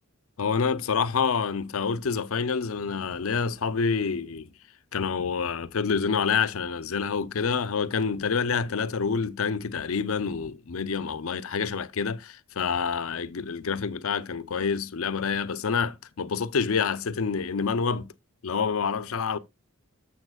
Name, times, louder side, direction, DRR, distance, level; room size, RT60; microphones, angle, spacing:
voice 1, 0.4-4.5 4.9-18.1 18.4-19.4, left 5 dB, 75° left, 0.6 m, -27 dB
12.5 x 7.0 x 2.3 m
head